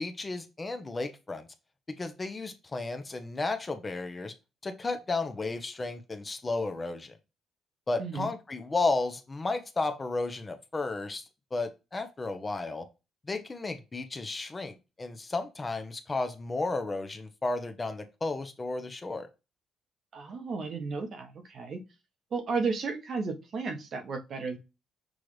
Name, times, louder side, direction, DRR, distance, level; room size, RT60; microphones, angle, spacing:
voice 1, 0.0-1.5 1.9-4.3 4.6-7.2 7.9-11.2 11.5-12.9 13.3-19.3, left 3 dB, 25° left, 0.7 m, -33 dB
voice 2, 8.0-8.3 20.1-21.8 22.3-24.6, right 4 dB, 55° right, 1.0 m, -33 dB
6.2 x 2.5 x 3.1 m
cardioid pair, 90°, 0 cm